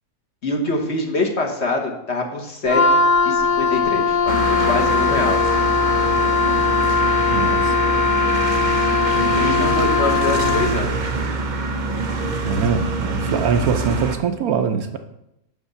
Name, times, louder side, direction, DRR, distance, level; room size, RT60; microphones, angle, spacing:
voice 1, 0.4-5.4 9.4-11.1, left 2 dB, 45° left, 1 dB, 1.5 m, -24 dB
Wind instrument woodwind instrument, 2.7-10.8, left 5 dB, 65° left, 0.5 m, -19 dB
sound 1, 4.3-14.2, right 3 dB, 45° right, 0.6 m, -24 dB
voice 2, 7.3-7.9 12.4-15.0, right 6 dB, 70° right, 7 dB, 1.1 m, -23 dB
11.0 x 3.7 x 6.8 m, 0.82 s
omnidirectional pair, 1.7 m